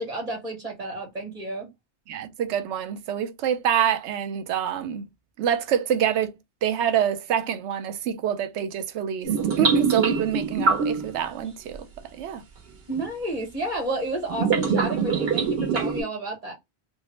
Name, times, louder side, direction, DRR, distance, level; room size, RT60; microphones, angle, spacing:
voice 1, 0.0-1.7 12.9-16.5, right 1 dB, 35° right, 1.3 m, -31 dB
voice 2, 2.1-5.1 5.4-9.3 9.6-11.9 12.2-12.4, right 9 dB, 90° right, 0.9 m, -26 dB
sound 1, 9.2-11.2 12.9-13.0 14.3-16.0, right 5 dB, 65° right, 1.2 m, -24 dB
3.5 x 2.0 x 3.1 m
omnidirectional pair, 1.1 m